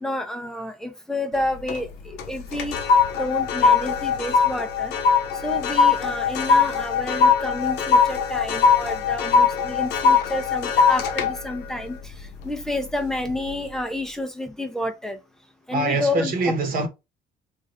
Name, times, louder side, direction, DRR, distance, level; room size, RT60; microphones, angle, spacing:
voice 1, 0.0-2.8 3.2-4.9 5.4-12.0 12.4-15.2 15.7-16.3, left 1 dB, 5° left, 0.6 m, -29 dB
sound 1, 1.3-1.9 2.2-12.7 13.2-13.5, left 5 dB, 85° left, 0.6 m, -21 dB
voice 2, 15.7-16.9, right 2 dB, 55° right, 1.1 m, -24 dB
3.0 x 2.5 x 2.6 m
cardioid pair, 110°, 17 cm